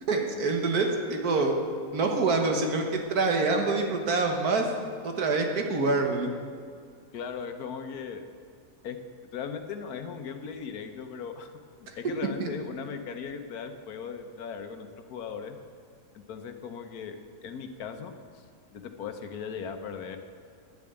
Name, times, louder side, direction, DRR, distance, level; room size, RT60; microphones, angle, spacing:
voice 1, 0.1-1.6 1.9-2.8 3.1-4.7 5.0-6.3 11.9-12.0 12.4-12.5, right 3 dB, 75° right, 3 dB, 1.8 m, -26 dB
voice 2, 7.1-8.3 8.8-9.0 9.3-11.5 11.9-15.6 16.1-18.4 18.7-20.2, left 6 dB, 75° left, 7 dB, 1.4 m, -38 dB
10.5 x 7.1 x 8.8 m, 2.2 s
omnidirectional pair, 1.7 m